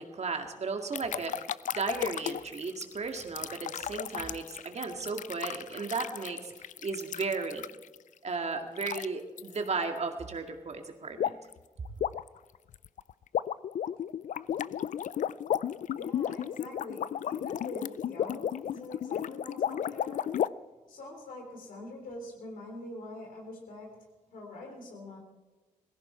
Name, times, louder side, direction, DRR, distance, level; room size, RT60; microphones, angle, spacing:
voice 1, 0.0-1.4 1.7-7.7 8.2-11.4, right 4 dB, 50° right, 4 dB, 2.0 m, -35 dB
sound 1, 0.9-8.0 8.8-9.1 9.4-9.6 11.2-11.5 11.8-20.5, left 10 dB, 65° left, 0.4 m, -34 dB
voice 2, 15.9-20.3 20.9-25.2, left 2 dB, 85° left, 2 dB, 3.4 m, -44 dB
17.5 x 15.0 x 4.4 m, 1.2 s
cardioid pair, 55°, 14 cm